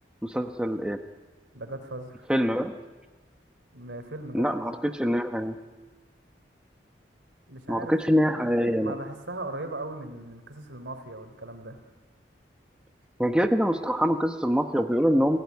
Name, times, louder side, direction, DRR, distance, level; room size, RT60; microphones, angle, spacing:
voice 1, 0.2-1.0 2.3-2.7 4.3-5.6 7.7-8.9 13.2-15.4, equal, 5° right, 5 dB, 1.0 m, -24 dB
voice 2, 1.5-2.3 3.7-4.5 7.5-7.9 8.8-11.8, right 2 dB, 90° right, 7 dB, 3.5 m, -38 dB
29.5 x 16.5 x 9.5 m, 1.3 s
head